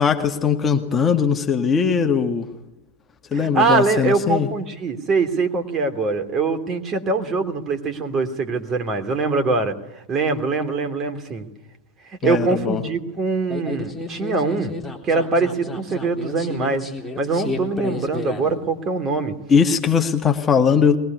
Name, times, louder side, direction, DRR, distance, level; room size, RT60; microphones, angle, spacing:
voice 1, 0.0-2.5 3.3-4.5 12.2-12.8 19.5-21.0, left 6 dB, 20° left, 4 dB, 1.9 m, -19 dB
voice 2, 3.3-9.8 10.1-11.5 12.2-14.7 15.0-16.8 17.2-19.4, right 3 dB, 25° right, 7 dB, 3.0 m, -23 dB
sound 1, 13.5-18.6, left 2 dB, 5° left, 3.8 m, -32 dB
22.5 x 20.5 x 9.8 m, 0.92 s
figure-of-eight pair, 90°, 0 cm